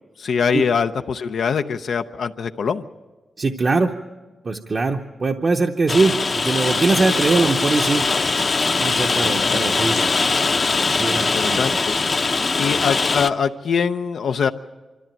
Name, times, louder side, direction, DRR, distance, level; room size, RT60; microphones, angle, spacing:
voice 1, 0.2-2.8 9.4-9.6 11.1-12.0 12.6-14.5, left 6 dB, 75° left, 7 dB, 0.6 m, -23 dB
voice 2, 3.4-3.9 4.4-8.1 8.8-10.0 10.8-11.8, right 3 dB, 40° right, 2 dB, 0.8 m, -21 dB
Rain, 5.9-13.3, left 3 dB, 40° left, 0.7 m, -21 dB
25.0 x 13.5 x 9.0 m, 1.2 s
wide cardioid pair, 135°, 0 cm